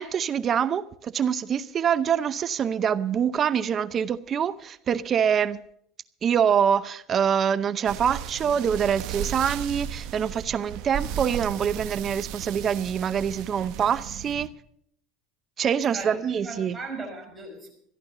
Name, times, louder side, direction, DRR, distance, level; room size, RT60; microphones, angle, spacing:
voice 1, 0.0-5.6 6.2-14.5 15.6-16.8, right 8 dB, 35° right, 0.6 m, -25 dB
sound 1, 7.9-14.5, right 10 dB, 60° right, 1.1 m, -35 dB
voice 2, 15.9-17.7, right 3 dB, 15° right, 5.5 m, -38 dB
14.5 x 10.5 x 6.7 m
supercardioid pair, 115°, 0 cm